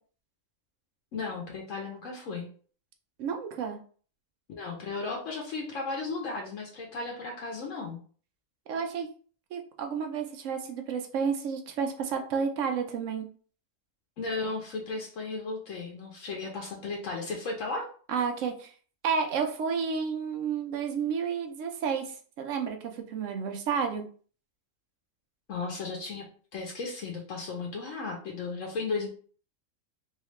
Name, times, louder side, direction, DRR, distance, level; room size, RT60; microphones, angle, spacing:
voice 1, 1.1-2.5 4.5-8.0 14.2-17.8 25.5-26.3 26.5-29.1, left 3 dB, 75° left, 0 dB, 1.1 m, -35 dB
voice 2, 3.2-3.8 8.7-9.1 9.5-13.3 18.1-18.7 19.0-24.1, right 6 dB, 75° right, 5 dB, 0.9 m, -31 dB
3.2 x 2.8 x 3.1 m, 0.43 s
omnidirectional pair, 1.4 m